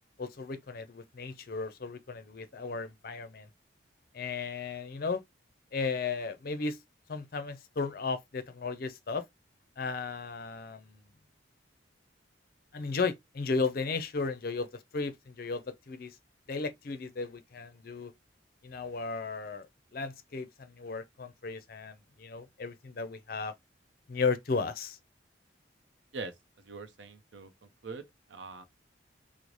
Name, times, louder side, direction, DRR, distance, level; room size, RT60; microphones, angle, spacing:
voice 1, 0.2-3.5 4.1-5.2 5.7-6.8 7.1-9.2 9.8-11.0 12.7-16.2 16.5-18.1 18.6-23.5 24.1-25.0, left 4 dB, 50° left, 0.4 m, -35 dB
voice 2, 26.1-28.0 28.3-28.6, right 3 dB, 75° right, 0.6 m, -43 dB
3.1 x 2.0 x 3.8 m
head